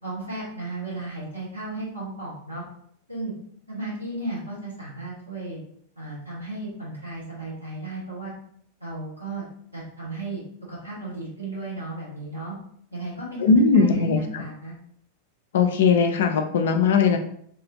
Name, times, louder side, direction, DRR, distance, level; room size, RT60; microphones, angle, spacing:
voice 1, 0.0-2.6 3.1-3.3 3.7-5.6 6.0-8.3 8.8-9.5 9.7-10.4 10.7-12.5 12.9-13.4 13.7-14.7, right 2 dB, 85° right, -7 dB, 1.4 m, -34 dB
voice 2, 13.4-14.4 15.5-17.2, left 5 dB, 60° left, 5 dB, 0.4 m, -19 dB
2.7 x 2.4 x 2.7 m, 0.66 s
figure-of-eight pair, 90°, 0 cm